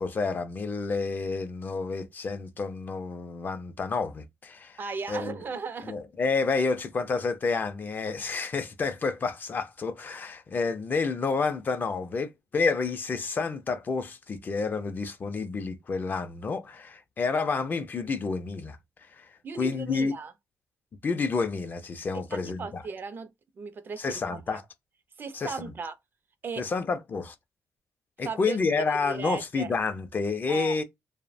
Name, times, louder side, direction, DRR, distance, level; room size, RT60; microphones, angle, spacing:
voice 1, 0.0-4.8 5.1-5.4 5.8-18.8 19.2-19.3 19.6-20.1 21.0-22.8 24.0-24.6 25.3-25.7 26.6-27.3 28.2-30.8, left 4 dB, 35° left, 0.4 m, -29 dB
voice 2, 4.8-6.0 19.4-20.3 22.1-23.3 23.6-24.4 25.2-26.0 26.4-26.7 28.2-29.7 30.5-30.8, right 5 dB, 40° right, 0.3 m, -36 dB
2.7 x 2.0 x 2.4 m
cardioid pair, 115°, 5 cm